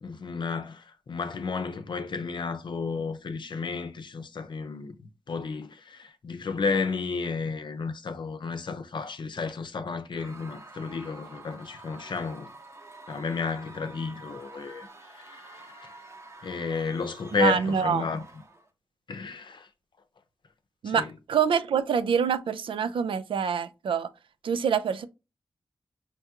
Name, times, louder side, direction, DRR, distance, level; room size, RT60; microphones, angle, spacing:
voice 1, 0.0-12.5 13.1-16.0 16.4-18.2 19.1-19.7 20.8-21.1, left 4 dB, 65° left, 0.6 m, -32 dB
Screaming / Cheering / Crowd, 10.1-18.7, right 2 dB, 35° right, 0.7 m, -48 dB
voice 2, 17.3-18.1 20.8-24.1 24.4-25.1, right 7 dB, 80° right, 0.4 m, -26 dB
4.6 x 2.3 x 2.8 m
cardioid pair, 45°, 9 cm